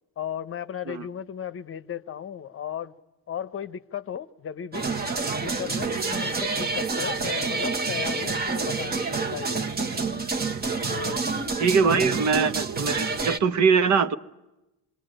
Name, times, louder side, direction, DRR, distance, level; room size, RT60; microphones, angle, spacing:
voice 1, 0.2-3.0 3.3-4.9 5.4-10.3 10.9-11.2 11.8-12.1, left 9 dB, 35° left, 0.9 m, -35 dB
sound 1, 4.7-13.4, right 4 dB, 25° right, 1.2 m, -28 dB
voice 2, 11.6-14.1, right 5 dB, 50° right, 1.1 m, -22 dB
27.5 x 22.0 x 9.0 m
cardioid pair, 145°, 36 cm